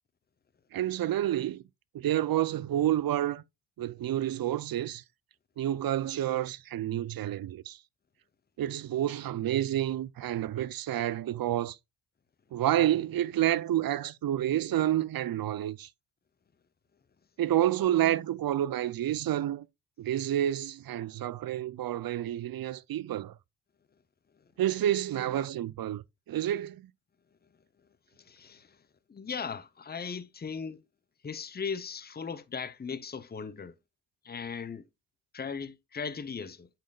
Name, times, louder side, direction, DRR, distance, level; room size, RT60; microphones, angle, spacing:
voice 1, 0.7-1.6 1.9-3.4 3.8-5.0 5.6-7.8 8.6-11.8 12.5-15.9 17.4-19.7 20.0-23.3 24.6-26.9, right 12 dB, 50° right, 0.6 m, -29 dB
voice 2, 28.2-28.7 29.1-30.8 31.2-33.7 34.2-34.9 35.3-36.7, left 6 dB, 20° left, 0.8 m, -38 dB
8.3 x 5.8 x 2.4 m
supercardioid pair, 55°, 46 cm